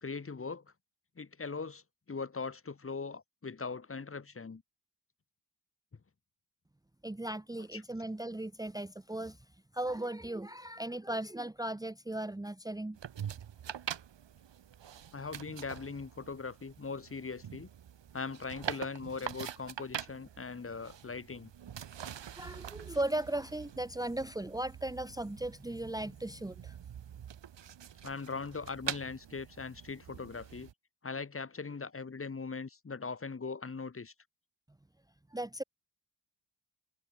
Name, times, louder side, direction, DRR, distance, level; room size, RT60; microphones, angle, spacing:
voice 1, 0.0-0.7 1.2-4.6 7.7-7.8 15.1-17.7 18.1-21.5 28.0-30.7 31.0-34.1, left 4 dB, 30° left, 2.5 m, -40 dB
voice 2, 7.0-9.4 9.7-13.0 22.4-26.8 35.3-35.6, right 1 dB, 10° right, 1.2 m, -37 dB
sound 1, 12.9-30.7, right 9 dB, 75° right, 3.0 m, -45 dB
wide cardioid pair, 140°, 44 cm